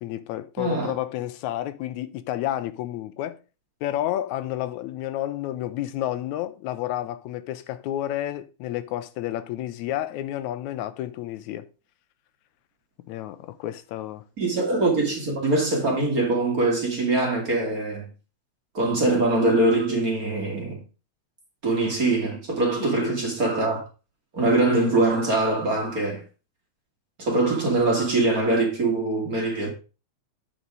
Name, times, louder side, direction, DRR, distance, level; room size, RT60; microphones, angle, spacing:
voice 1, 0.0-3.4 3.8-11.7 13.1-14.3 22.8-23.2, left 13 dB, 85° left, 2.0 m, -30 dB
voice 2, 0.6-0.9 14.4-18.1 18.7-20.8 21.6-23.8 24.3-26.2 27.2-29.7, right 2 dB, 35° right, 1.8 m, -23 dB
8.1 x 5.3 x 4.7 m
omnidirectional pair, 3.3 m